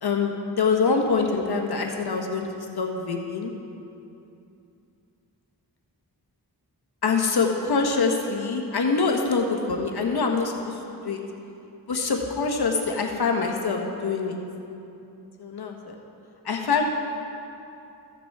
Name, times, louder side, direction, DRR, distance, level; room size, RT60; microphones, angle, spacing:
voice 1, 0.0-2.5 2.8-3.5 7.0-10.5 11.0-11.2 11.9-14.4 15.4-15.9 16.4-16.8, left 4 dB, 70° left, 2 dB, 1.2 m, -24 dB
15.0 x 5.9 x 4.7 m, 2.7 s
cardioid pair, 60°, 40 cm